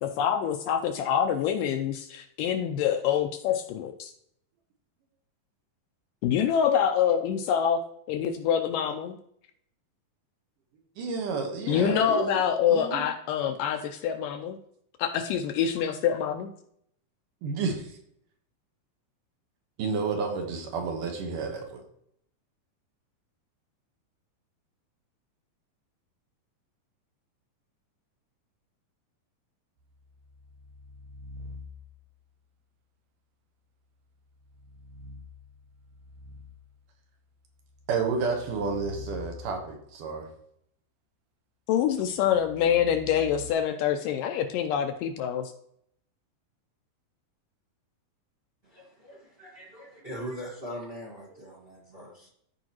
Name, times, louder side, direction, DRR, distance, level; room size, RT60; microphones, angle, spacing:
voice 1, 0.0-4.1 6.2-7.8 8.1-9.2 11.7-14.6 15.0-16.5 41.7-45.5, left 8 dB, 80° left, 6 dB, 2.0 m, -26 dB
voice 2, 11.0-12.4 12.7-13.1 17.4-17.9 19.8-21.8 37.9-40.3, right 4 dB, 70° right, 3 dB, 2.7 m, -30 dB
sound 1, 29.8-32.2 34.3-36.8 37.5-40.0 42.0-43.5, left 2 dB, 85° right, 1.7 m, -46 dB
voice 3, 48.6-52.3, equal, 30° right, -3 dB, 1.1 m, -41 dB
14.0 x 4.7 x 3.0 m, 0.69 s
omnidirectional pair, 4.1 m